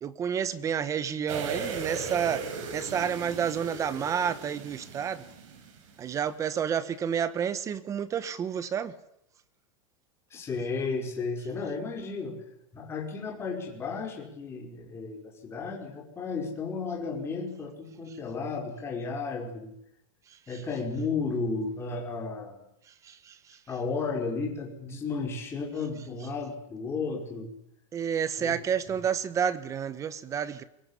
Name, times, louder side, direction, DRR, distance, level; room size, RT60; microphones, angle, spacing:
voice 1, 0.0-2.4 2.7-5.2 6.0-8.9 23.0-23.3 27.9-30.6, right 8 dB, 20° right, 15 dB, 1.2 m, -30 dB
sound 1, 1.3-6.1 6.4-6.5, right 5 dB, 65° right, 6.6 m, -37 dB
voice 2, 10.3-12.4 12.7-19.7 20.5-22.6 23.7-27.5 28.4-28.5, left 4 dB, 15° left, 1 dB, 5.4 m, -33 dB
23.0 x 22.5 x 10.0 m, 0.76 s
supercardioid pair, 170°, 17 cm